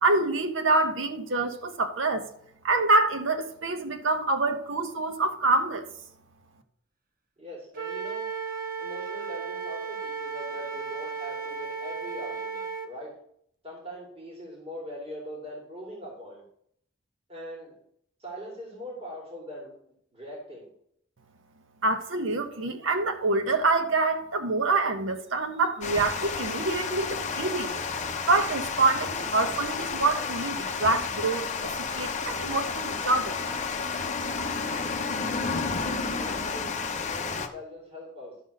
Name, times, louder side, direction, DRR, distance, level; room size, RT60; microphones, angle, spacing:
voice 1, 0.0-2.3 2.6-5.9 21.8-27.7 28.3-33.5, right 3 dB, 75° right, 0.9 m, -26 dB
voice 2, 7.4-8.3 8.8-13.1 13.6-16.4 17.3-17.7 18.2-19.7 20.1-20.7 35.4-38.3, equal, 30° right, 2.6 m, -41 dB
Wind instrument woodwind instrument, 7.7-12.9, right 5 dB, 45° right, 0.8 m, -35 dB
Water, 25.8-37.5, left 5 dB, 35° left, 0.7 m, -31 dB
12.0 x 4.0 x 6.4 m
head